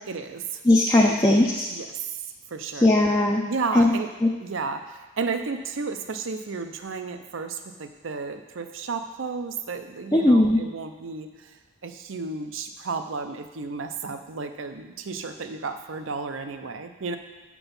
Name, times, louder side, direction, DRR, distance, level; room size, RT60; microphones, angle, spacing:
voice 1, 0.1-0.6 1.0-1.2 1.7-2.0 2.5-2.9 3.5-4.1 4.4-11.5 11.8-17.2, right 4 dB, 80° right, 7 dB, 0.6 m, -33 dB
voice 2, 0.6-1.7 2.7-3.4 3.7-3.9 4.2-4.3 10.1-10.6, left 1 dB, 15° left, -1 dB, 0.5 m, -18 dB
6.9 x 6.0 x 5.4 m, 1.2 s
head